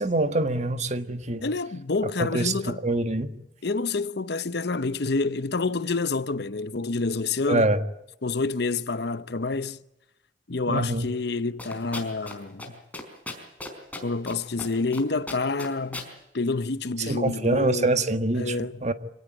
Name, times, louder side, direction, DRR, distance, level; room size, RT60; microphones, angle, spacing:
voice 1, 0.0-1.4 2.2-3.3 7.5-7.8 10.7-11.1 17.0-18.9, right 2 dB, 40° right, 1.5 m, -25 dB
voice 2, 1.4-2.8 3.6-7.7 8.2-9.8 10.5-12.7 14.0-16.0 16.3-18.0 18.4-18.8, left 3 dB, 60° left, 0.8 m, -28 dB
sound 1, 11.6-12.3 12.6-12.7 12.9-14.3 14.6-15.0 15.3-16.1, left 2 dB, 10° left, 4.6 m, -36 dB
26.5 x 18.5 x 9.2 m
head